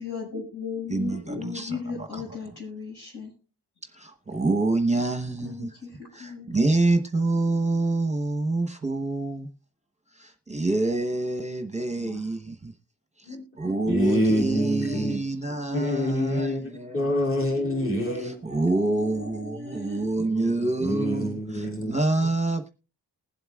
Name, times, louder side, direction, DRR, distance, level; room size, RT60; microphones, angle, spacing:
voice 1, 0.0-3.3 5.4-5.9 6.2-6.6 12.0-12.2 14.4-15.1 17.6-18.2 18.7-20.0 21.9-22.0, left 4 dB, 75° left, -1 dB, 6.9 m, -36 dB
voice 2, 0.9-2.2 4.3-5.7 6.5-9.5 10.5-12.4 13.6-17.0 18.2-21.3 21.9-22.7, right 2 dB, 15° right, 5 dB, 1.0 m, -26 dB
voice 3, 13.2-15.2 15.7-18.4 20.8-21.9, equal, 30° left, -2 dB, 2.8 m, -26 dB
20.0 x 7.9 x 2.4 m, 0.33 s
wide cardioid pair, 100°, 40 cm